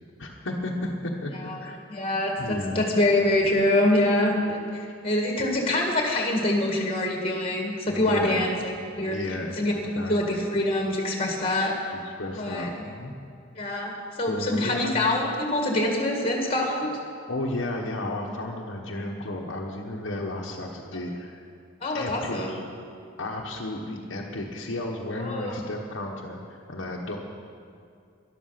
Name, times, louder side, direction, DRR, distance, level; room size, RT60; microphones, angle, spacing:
voice 1, 0.2-1.3 1.6-1.8 2.4-2.8 7.9-8.5 9.0-10.4 11.9-13.1 14.3-14.9 17.3-21.4 21.9-22.6 23.2-27.2, left 1 dB, 75° left, -1 dB, 1.2 m, -33 dB
voice 2, 1.9-8.7 9.0-9.2 9.6-11.7 12.3-12.7 13.6-16.9 21.8-22.6 25.2-25.5, left 1 dB, 30° left, 1 dB, 2.0 m, -25 dB
13.0 x 11.5 x 5.8 m, 2.4 s
head